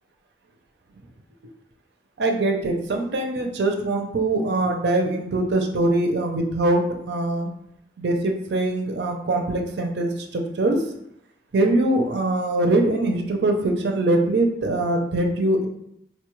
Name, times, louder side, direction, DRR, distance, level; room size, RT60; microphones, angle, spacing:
voice 1, 2.2-7.5 8.0-10.8 11.5-15.7, right 2 dB, 75° right, 3 dB, 0.5 m, -22 dB
4.1 x 2.2 x 3.0 m, 0.78 s
head